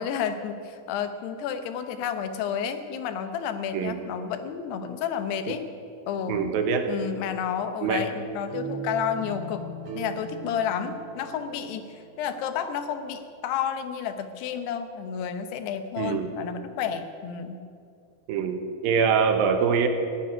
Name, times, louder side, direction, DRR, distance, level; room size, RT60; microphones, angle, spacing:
voice 1, 0.0-5.7 6.1-6.4 6.9-9.6 9.9-17.6, left 8 dB, 80° left, 9 dB, 3.1 m, -31 dB
voice 2, 6.3-6.9 7.8-8.0 16.0-16.3 18.3-19.9, right 6 dB, 70° right, 6 dB, 2.6 m, -24 dB
sound 1, 7.9-12.8, right 2 dB, 50° right, 3.0 m, -39 dB
16.5 x 9.0 x 9.8 m, 2.4 s
omnidirectional pair, 4.8 m